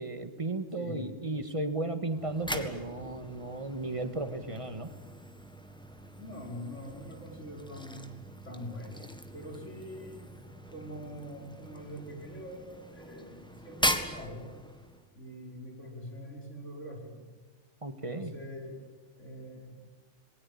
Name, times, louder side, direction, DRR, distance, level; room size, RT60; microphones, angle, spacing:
voice 1, 0.0-4.9 17.8-18.4, right 2 dB, 25° right, 9 dB, 1.8 m, -35 dB
voice 2, 0.8-1.1 6.2-9.1 9.3-10.2 10.7-14.5 15.1-17.3 18.1-19.8, equal, 90° left, 1 dB, 5.9 m, -44 dB
sound 1, 2.1-15.1, equal, 5° left, 1.7 m, -39 dB
27.5 x 20.5 x 8.7 m, 1.4 s
omnidirectional pair, 1.2 m